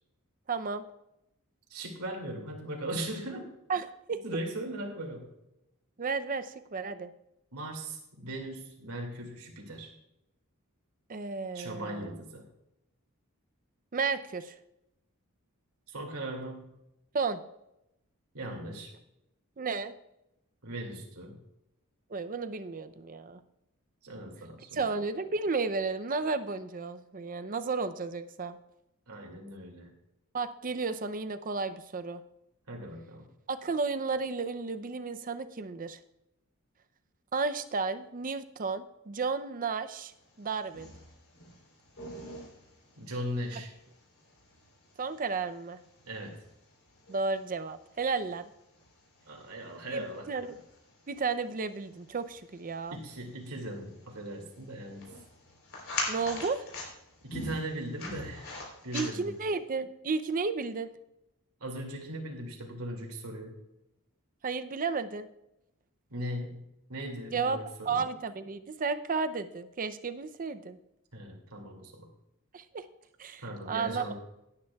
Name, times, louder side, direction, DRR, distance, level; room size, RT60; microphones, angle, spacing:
voice 1, 0.5-0.8 3.7-4.2 6.0-7.1 11.1-12.2 13.9-14.6 17.1-17.4 19.6-19.9 22.1-23.4 24.7-28.6 30.3-32.2 33.5-36.0 37.3-40.1 40.4-40.9 45.0-45.8 47.1-48.5 49.9-50.6 51.1-53.0 56.1-56.6 58.9-60.9 64.4-65.3 67.3-70.8 72.5-72.8 73.2-74.1, right 4 dB, 40° right, 11 dB, 0.5 m, -33 dB
voice 2, 1.7-3.6 4.2-5.3 7.5-9.9 11.5-12.4 15.9-16.8 18.3-18.9 20.6-21.4 24.0-24.8 29.1-29.9 32.7-33.3 43.0-43.7 46.1-46.4 49.3-50.3 52.9-55.1 57.2-59.3 61.6-63.6 66.1-66.6 66.9-68.0 71.1-72.1 73.4-74.1, right 1 dB, 75° right, 2 dB, 2.5 m, -39 dB
sound 1, 40.1-59.6, left 2 dB, 60° left, 3.8 m, -44 dB
17.5 x 9.7 x 2.3 m, 0.86 s
head